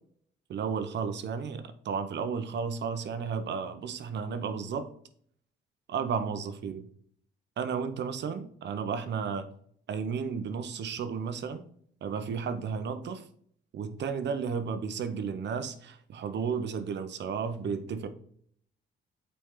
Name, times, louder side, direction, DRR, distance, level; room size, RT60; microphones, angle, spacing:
voice 1, 0.5-4.9 5.9-6.9 7.6-9.5 9.9-11.6 12.0-13.3 13.7-18.1, right 6 dB, 60° right, 10 dB, 0.9 m, -33 dB
8.7 x 4.2 x 3.8 m, 0.62 s
cardioid pair, 90°, 20 cm